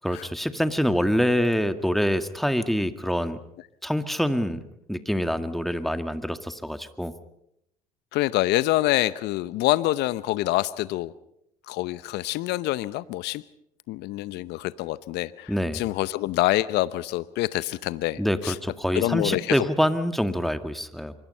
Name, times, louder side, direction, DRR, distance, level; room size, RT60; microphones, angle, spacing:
voice 1, 0.0-3.4 3.8-4.6 4.9-7.1 15.5-15.8 18.2-21.1, equal, ahead, 10 dB, 1.9 m, -25 dB
voice 2, 8.1-11.1 11.7-13.4 13.9-18.6 18.9-19.6, left 17 dB, 65° left, 18 dB, 0.8 m, -26 dB
25.5 x 24.0 x 5.6 m, 0.78 s
hypercardioid pair, 65°, 19 cm